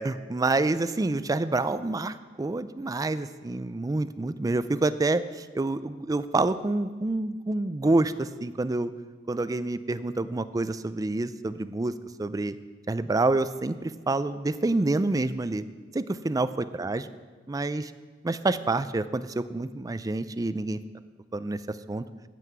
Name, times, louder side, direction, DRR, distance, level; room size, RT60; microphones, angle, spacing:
voice 1, 0.0-8.9 9.3-11.9 12.2-12.6 12.9-15.6 15.9-17.1 17.5-17.9 18.2-20.8 21.3-22.0, right 2 dB, 20° right, 13 dB, 0.4 m, -27 dB
9.2 x 7.7 x 8.0 m, 1.4 s
head